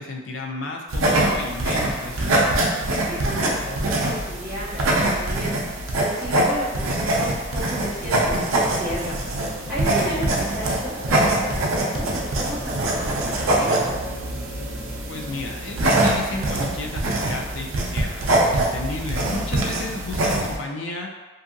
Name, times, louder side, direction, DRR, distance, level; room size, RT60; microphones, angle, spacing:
voice 1, 0.0-2.6 15.1-21.2, left 3 dB, 60° left, 1 dB, 0.4 m, -32 dB
sound 1, 0.9-20.6, right 1 dB, 75° right, 0.5 m, -23 dB
voice 2, 2.9-5.5 5.9-9.2 9.7-13.7, equal, 15° right, -16 dB, 0.6 m, -33 dB
sound 2, 8.1-16.4, left 1 dB, 35° left, 0.9 m, -39 dB
2.6 x 2.6 x 2.5 m, 1.3 s
head